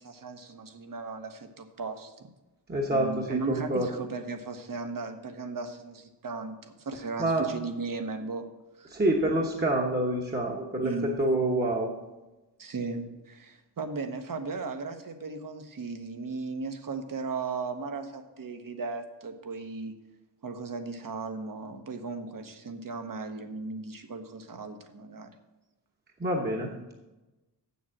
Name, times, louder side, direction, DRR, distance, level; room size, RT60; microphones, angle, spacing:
voice 1, 0.0-2.1 2.9-8.5 8.8-8.9 10.8-11.2 12.6-19.9 20.4-25.3, right 4 dB, 50° right, 7 dB, 1.0 m, -36 dB
voice 2, 2.7-3.9 7.2-7.5 8.9-11.9 26.2-26.9, right 1 dB, 25° right, -1 dB, 1.0 m, -27 dB
7.5 x 7.0 x 7.5 m, 1.1 s
wide cardioid pair, 140°, 42 cm